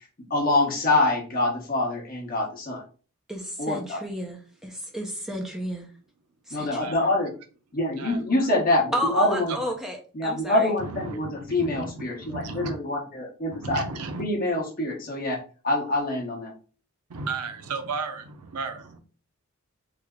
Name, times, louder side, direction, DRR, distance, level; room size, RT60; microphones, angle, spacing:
voice 1, 0.3-2.8 3.6-4.0 6.5-7.3 7.7-9.5 10.1-13.8 14.2-16.5, left 2 dB, 40° left, 1.0 m, -25 dB
voice 2, 3.3-5.9 6.5-6.9 8.9-10.7, equal, ahead, 0.6 m, -32 dB
voice 3, 10.8-12.8 13.5-14.2 17.1-19.0, right 4 dB, 85° right, 0.6 m, -34 dB
3.3 x 2.1 x 3.6 m
head